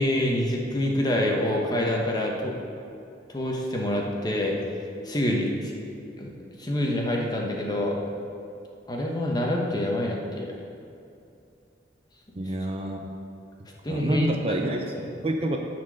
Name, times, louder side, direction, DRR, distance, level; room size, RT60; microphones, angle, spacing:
voice 1, 0.0-2.5 3.3-4.6 5.0-5.7 6.2-6.3 6.6-7.9 8.9-10.5 13.8-14.3 14.9-15.1, left 1 dB, 20° left, -1 dB, 1.1 m, -26 dB
voice 2, 12.4-13.1 13.9-14.9 15.2-15.6, right 1 dB, 30° right, 2 dB, 0.6 m, -28 dB
9.9 x 4.5 x 6.3 m, 2.6 s
head